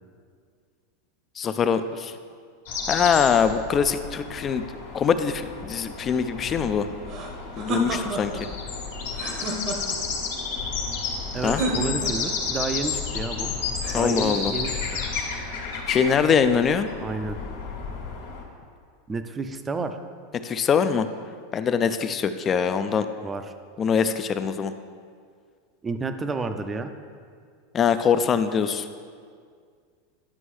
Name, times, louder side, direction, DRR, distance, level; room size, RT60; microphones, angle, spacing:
voice 1, 1.4-2.2 2.9-4.6 4.9-6.9 7.6-8.3 11.4-11.6 13.9-14.5 15.9-16.9 20.4-21.1 21.5-23.1 23.8-24.7 27.7-28.8, left 7 dB, 30° left, 10 dB, 0.4 m, -23 dB
sound 1, 2.7-18.4, left 5 dB, 80° left, 1.5 m, -32 dB
sound 2, 7.1-8.5 9.1-10.2 11.4-12.4 13.8-14.7, right 1 dB, 50° right, 1.0 m, -31 dB
voice 2, 11.3-13.5 13.9-14.8 17.0-17.4 19.1-20.0 23.2-23.5 25.8-26.9, right 3 dB, 20° right, 8 dB, 0.5 m, -30 dB
9.8 x 5.2 x 3.2 m, 2.1 s
hypercardioid pair, 100°, 0 cm